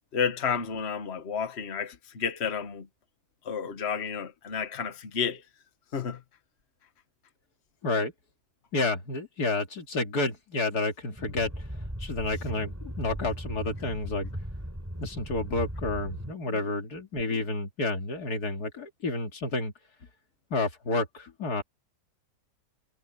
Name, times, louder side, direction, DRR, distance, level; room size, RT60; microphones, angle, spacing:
voice 1, 0.1-2.9 3.5-5.4 5.9-6.2 16.5-16.6, left 6 dB, 45° left, 1.6 m, -31 dB
voice 2, 8.7-11.5 12.0-14.3 15.0-19.7 20.5-21.6, left 2 dB, 85° left, 2.9 m, -30 dB
thrusters loop, 11.2-16.3, equal, 10° right, 5.0 m, -37 dB
omnidirectional pair, 1.6 m